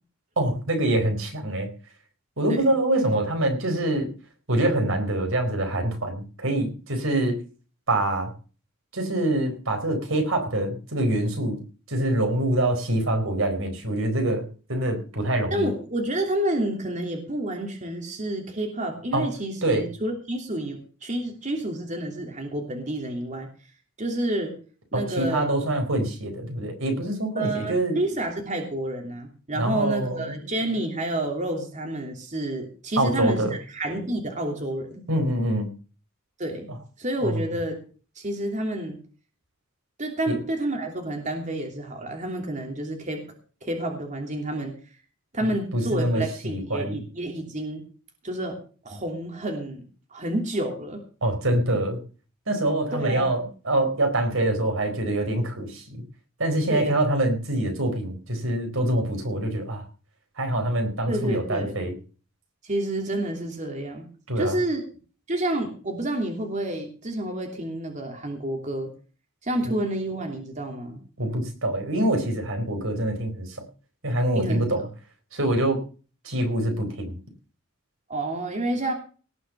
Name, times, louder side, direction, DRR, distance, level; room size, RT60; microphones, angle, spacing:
voice 1, 0.4-1.7 2.4-4.1 4.5-7.4 7.9-8.3 8.9-11.6 11.9-14.4 14.7-15.7 19.1-19.3 19.6-19.9 24.9-28.0 29.5-30.4 33.0-33.6 35.1-35.7 37.2-37.4 40.3-40.4 45.4-47.0 51.2-52.0 52.5-56.0 56.4-59.8 60.4-61.9 64.3-64.6 71.2-73.6 74.0-74.9 75.3-75.8 76.2-77.2, right 1 dB, 80° right, 5 dB, 4.5 m, -25 dB
voice 2, 15.5-23.5 24.0-24.5 24.9-25.6 27.3-35.0 36.4-36.7 37.0-37.7 38.2-39.0 40.0-43.3 43.6-44.7 45.3-47.8 48.2-48.6 48.8-49.8 50.1-51.0 52.9-53.5 56.7-57.0 61.1-61.7 62.6-64.1 64.4-64.8 65.3-68.9 69.4-71.0 74.3-74.7 78.1-78.9, right 1 dB, 35° right, 2 dB, 3.0 m, -29 dB
18.5 x 6.4 x 6.8 m, 0.38 s
head